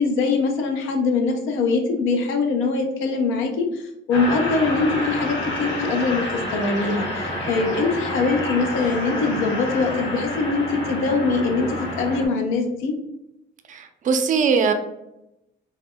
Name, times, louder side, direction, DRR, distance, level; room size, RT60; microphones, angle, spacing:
voice 1, 0.0-6.2 6.5-12.9, left 4 dB, 90° left, 3 dB, 0.4 m, -23 dB
sound 1, 4.1-12.3, left 1 dB, 70° left, 0.8 m, -28 dB
voice 2, 13.7-14.7, right 5 dB, 40° right, 7 dB, 0.4 m, -20 dB
2.1 x 2.0 x 3.5 m, 0.88 s
cardioid pair, 90°, 20 cm